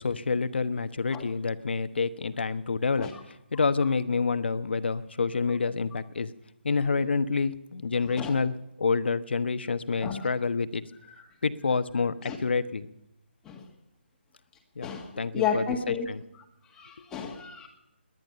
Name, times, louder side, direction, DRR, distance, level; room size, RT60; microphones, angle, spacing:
voice 1, 0.0-6.3 6.6-10.8 11.4-12.9 14.8-14.9 15.2-16.2, left 4 dB, 65° left, 11 dB, 1.1 m, -28 dB
voice 2, 14.8-16.1 16.7-17.7, left 7 dB, 10° left, 2 dB, 1.9 m, -32 dB
19.5 x 10.5 x 6.7 m, 0.87 s
figure-of-eight pair, 155°, 6 cm